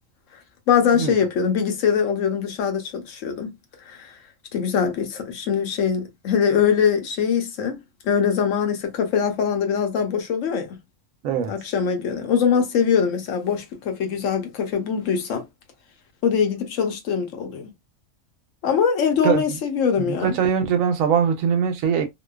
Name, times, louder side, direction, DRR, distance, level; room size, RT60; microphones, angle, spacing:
voice 1, 0.7-3.5 3.9-4.2 4.5-7.8 8.0-10.8 11.5-15.4 16.2-17.7 18.6-20.3, left 7 dB, 70° left, 1.0 m, -22 dB
voice 2, 11.2-11.6 19.2-19.6 20.0-22.1, right 7 dB, 80° right, 1.0 m, -22 dB
2.7 x 2.2 x 2.2 m
omnidirectional pair, 1.4 m